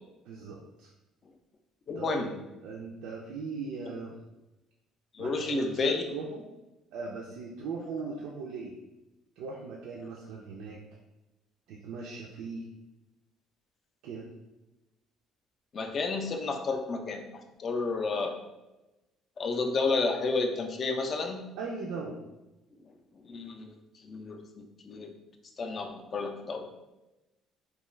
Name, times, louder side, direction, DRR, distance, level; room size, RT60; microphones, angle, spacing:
voice 1, 0.3-0.9 2.0-2.3 2.6-4.1 5.2-6.4 6.9-8.7 9.4-10.8 11.7-12.7 14.0-14.3 21.6-22.2, right 4 dB, 80° right, -2 dB, 0.4 m, -39 dB
voice 2, 1.9-2.3 5.1-6.0 15.7-17.3 17.6-18.3 19.4-21.5 23.2-23.7 24.0-25.2 25.6-26.7, left 4 dB, 35° left, 4 dB, 0.3 m, -31 dB
2.3 x 2.3 x 3.1 m, 1.0 s
cardioid pair, 135°, 0 cm